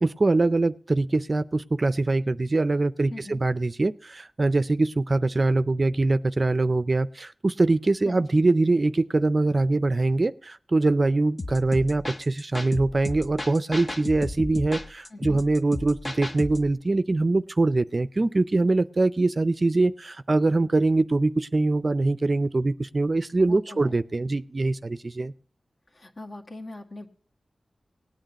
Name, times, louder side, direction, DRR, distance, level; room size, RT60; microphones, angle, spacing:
voice 1, 0.0-25.3, right 2 dB, 40° right, 13 dB, 0.5 m, -23 dB
voice 2, 3.1-3.4 8.0-8.3 15.1-15.4 23.4-23.9 25.9-27.1, left 2 dB, 50° left, 2 dB, 1.9 m, -41 dB
sound 1, 11.4-16.7, left 2 dB, 35° left, 0.7 m, -35 dB
18.5 x 9.1 x 2.9 m, 0.42 s
wide cardioid pair, 80°, 0 cm